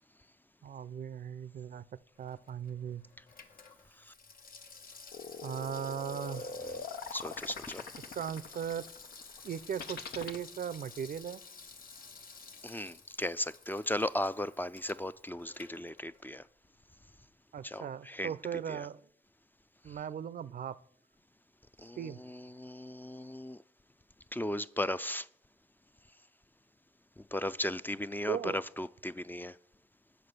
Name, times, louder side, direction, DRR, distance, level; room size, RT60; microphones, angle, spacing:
voice 1, 0.6-1.8 2.2-3.0 5.4-6.5 8.2-8.9 9.4-11.4 17.5-19.0 19.8-20.8 22.0-22.2 28.3-28.6, right 8 dB, 65° right, 0.4 m, -38 dB
Water tap faucet / Sink (filling or washing), 2.1-16.4 16.8-16.9, left 4 dB, 65° left, 1.0 m, -52 dB
sound 1, 5.1-10.4, left 4 dB, 85° left, 0.8 m, -42 dB
voice 2, 7.1-7.9 12.6-16.4 17.6-18.9 19.9-20.0 21.8-23.6 24.3-25.3 27.2-29.6, left 1 dB, 10° left, 0.4 m, -36 dB
7.8 x 5.1 x 6.6 m
supercardioid pair, 45°, 16 cm